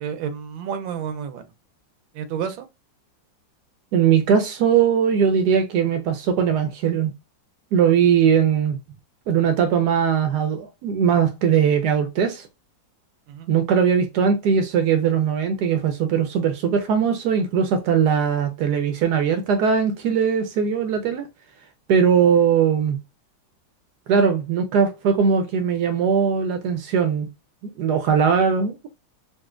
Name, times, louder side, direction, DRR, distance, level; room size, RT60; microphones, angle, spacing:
voice 1, 0.0-1.4 2.1-2.7 13.3-13.5, right 7 dB, 90° right, 1.4 m, -30 dB
voice 2, 3.9-7.1 7.7-8.8 9.3-12.5 13.5-21.3 21.9-23.0 24.1-27.3 27.6-28.9, right 7 dB, 75° right, 1.0 m, -20 dB
4.0 x 2.4 x 2.4 m
omnidirectional pair, 2.1 m